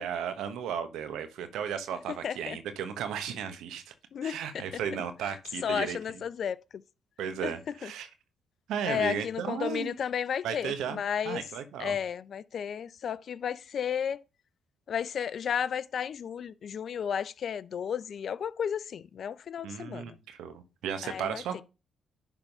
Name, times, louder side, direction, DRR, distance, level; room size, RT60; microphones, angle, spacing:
voice 1, 0.0-3.9 4.2-6.0 7.2-8.1 8.7-10.0 10.4-12.0 19.6-21.6, right 8 dB, 80° right, 1.1 m, -35 dB
voice 2, 2.2-2.6 4.1-4.6 4.9-5.0 5.6-6.8 7.4-7.9 8.8-11.4 11.8-14.2 14.9-20.2 21.0-21.6, left 8 dB, 60° left, 0.4 m, -33 dB
11.0 x 3.6 x 5.3 m
supercardioid pair, 55°, 0 cm